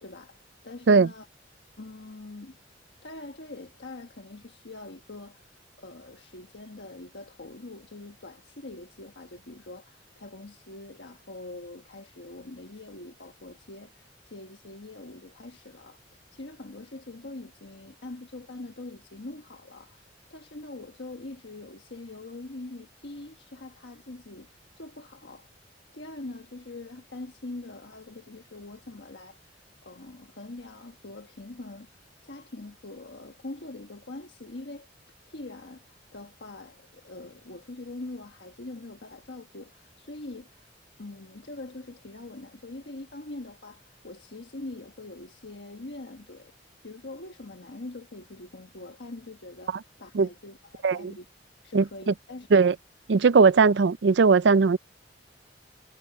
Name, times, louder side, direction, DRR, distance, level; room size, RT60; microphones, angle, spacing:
voice 1, 0.0-1.3 1.8-2.6 3.0-5.5 5.8-25.5 25.9-29.5 29.8-31.9 32.2-34.9 35.3-40.7 41.0-46.5 46.8-51.2 51.6-52.6, left 2 dB, 70° left, 1.3 m, -43 dB
voice 2, 51.7-52.1 52.5-52.7 53.1-54.8, right 4 dB, 70° right, 0.5 m, -19 dB
head